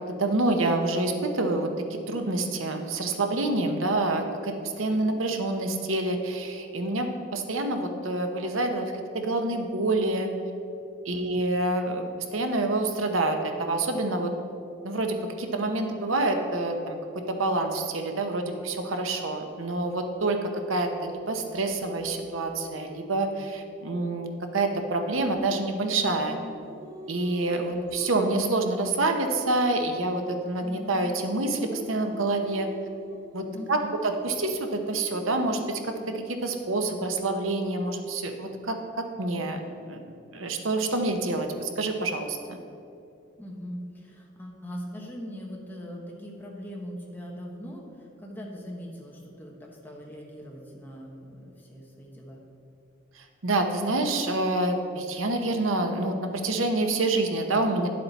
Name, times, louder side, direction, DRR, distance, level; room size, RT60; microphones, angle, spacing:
voice 1, 0.2-10.3 11.0-14.3 14.8-26.4 27.1-32.7 33.3-35.8 36.1-40.0 40.3-42.6 53.2-57.9, right 2 dB, 85° right, 5 dB, 0.9 m, -27 dB
Singing, 26.0-30.3 30.6-36.6, equal, 20° right, 0.7 m, -44 dB
voice 2, 33.5-34.0 43.4-47.8 48.2-52.4, equal, 10° left, -2 dB, 1.2 m, -40 dB
11.0 x 7.6 x 4.1 m, 2.6 s
head